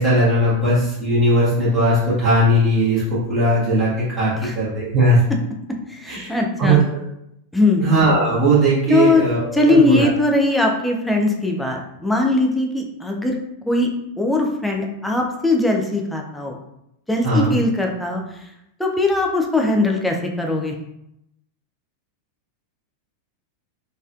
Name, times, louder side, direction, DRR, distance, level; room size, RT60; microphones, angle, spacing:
voice 1, 0.0-5.2 6.1-6.3 6.6-6.8 7.8-10.1 17.2-17.6, right 1 dB, 30° right, -10 dB, 1.5 m, -18 dB
voice 2, 5.9-6.8 7.5-7.8 8.9-9.2 9.5-13.3 13.7-13.9 14.2-16.6 17.1-18.2 18.8-20.7, left 2 dB, 5° left, 1 dB, 0.6 m, -20 dB
4.0 x 2.5 x 2.4 m, 0.81 s
figure-of-eight pair, 90°, 0 cm